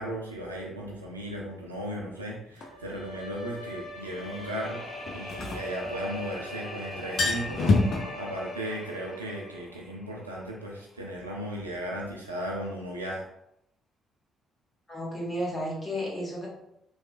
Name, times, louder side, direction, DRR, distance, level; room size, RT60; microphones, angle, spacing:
voice 1, 0.0-4.8 5.1-13.3, right 1 dB, 85° right, -3 dB, 0.4 m, -36 dB
Bowed string instrument, 2.6-9.7, left 2 dB, 70° left, 0.9 m, -42 dB
sound 1, 2.6-2.7 5.1-6.4 6.7-6.8 7.0-8.0, left 3 dB, 50° left, 0.5 m, -25 dB
sound 2, 3.8-10.8, equal, ahead, 0.6 m, -44 dB
voice 2, 14.9-16.5, equal, 20° left, -5 dB, 1.2 m, -32 dB
3.0 x 2.0 x 2.4 m, 0.79 s
figure-of-eight pair, 45°, 0 cm